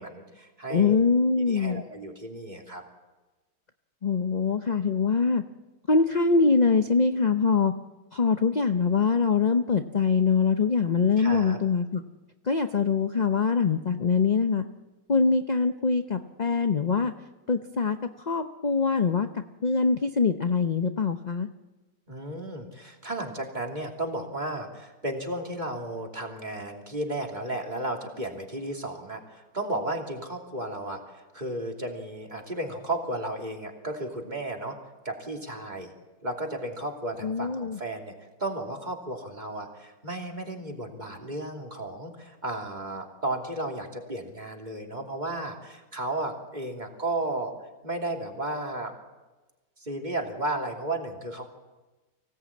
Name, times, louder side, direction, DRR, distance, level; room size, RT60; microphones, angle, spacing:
voice 1, 0.0-1.0 1.5-2.8 11.2-11.6 22.1-34.8 35.0-35.9 36.2-38.1 38.4-47.5 47.8-48.9 49.8-51.5, right 1 dB, 25° right, 1 dB, 3.1 m, -34 dB
voice 2, 0.7-1.8 4.0-5.4 5.9-7.7 8.1-12.0 12.4-14.6 15.1-17.1 17.5-19.3 19.6-21.5 37.2-37.8, left 5 dB, 40° left, 7 dB, 0.6 m, -23 dB
24.5 x 17.5 x 8.6 m, 1.2 s
omnidirectional pair, 1.8 m